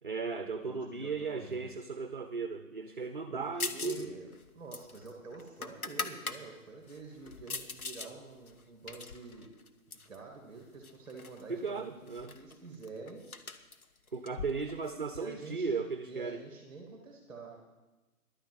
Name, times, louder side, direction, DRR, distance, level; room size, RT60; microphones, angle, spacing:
voice 1, 0.0-4.1 11.5-12.4 14.1-16.4, right 4 dB, 35° right, 9 dB, 0.6 m, -36 dB
voice 2, 0.6-1.7 3.3-9.5 9.9-13.2 15.1-15.8 16.0-17.6, right 4 dB, 5° right, 1 dB, 1.7 m, -48 dB
sound 1, 3.6-4.1 4.3-6.4 6.9-8.1 8.5-10.2 10.8-11.4 11.7-11.8 12.1-15.2, left 4 dB, 75° left, 1.3 m, -41 dB
11.5 x 10.0 x 7.7 m, 1.2 s
figure-of-eight pair, 155°, 44 cm